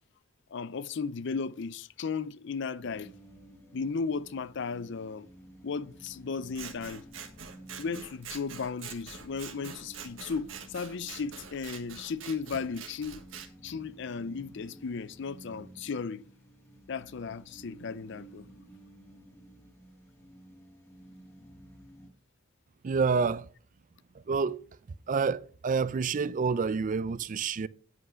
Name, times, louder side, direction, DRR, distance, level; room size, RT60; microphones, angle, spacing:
voice 1, 0.5-3.1 3.7-5.3 5.6-7.0 7.8-13.2 13.6-16.2 16.9-18.4, left 5 dB, 65° left, 0.5 m, -35 dB
sound 1, 2.8-22.1, right 1 dB, 10° left, 2.0 m, -53 dB
Scissors, 6.5-13.5, right 7 dB, 75° right, 1.5 m, -45 dB
voice 2, 22.8-23.5 24.3-24.6 25.1-27.7, right 5 dB, 40° right, 0.4 m, -28 dB
9.6 x 5.5 x 5.6 m
head